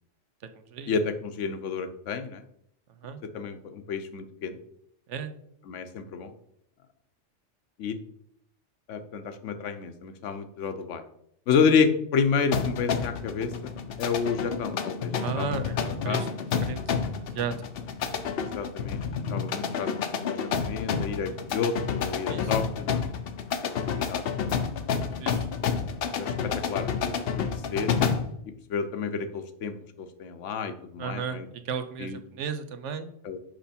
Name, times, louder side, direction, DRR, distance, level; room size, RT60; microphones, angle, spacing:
voice 1, 0.9-2.4 3.3-4.5 5.7-6.3 7.8-8.0 8.9-11.0 11.5-13.7 14.0-15.6 16.0-16.3 18.4-19.0 19.3-19.9 20.2-23.0 23.6-24.6 26.1-26.3 26.7-27.9 28.7-31.5 32.0-32.2 33.2-33.4, left 5 dB, 80° left, 10 dB, 1.1 m, -30 dB
sound 1, 12.5-28.4, left 6 dB, 60° left, 0.7 m, -30 dB
voice 2, 15.2-16.3 16.7-16.8 17.3-17.7 22.3-22.5 25.2-25.5 31.0-33.1, right 6 dB, 75° right, 9 dB, 1.0 m, -34 dB
6.0 x 5.3 x 4.3 m, 0.72 s
omnidirectional pair, 1.2 m